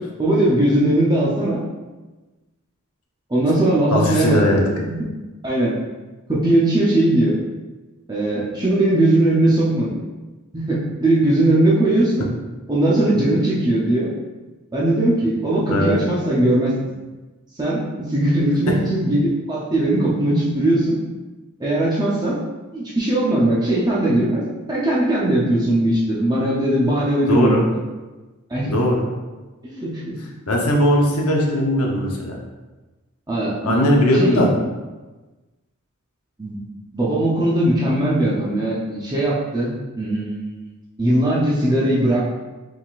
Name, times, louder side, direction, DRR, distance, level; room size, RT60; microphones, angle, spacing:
voice 1, 0.2-1.6 3.3-4.7 5.4-5.7 6.3-7.3 8.1-9.9 10.5-12.2 12.7-14.1 14.7-16.7 17.6-21.0 21.6-22.4 22.7-24.4 24.7-27.6 28.5-28.8 29.6-30.2 33.3-33.8 34.2-34.5 36.4-36.6 36.9-40.7 41.0-42.4, right 1 dB, 20° right, -7 dB, 0.6 m, -19 dB
voice 2, 3.9-4.6 15.7-15.9 18.7-18.8 27.3-27.6 28.6-29.1 30.5-32.4 33.6-34.5, left 1 dB, 80° left, -1 dB, 0.8 m, -18 dB
4.8 x 3.7 x 2.5 m, 1.2 s
head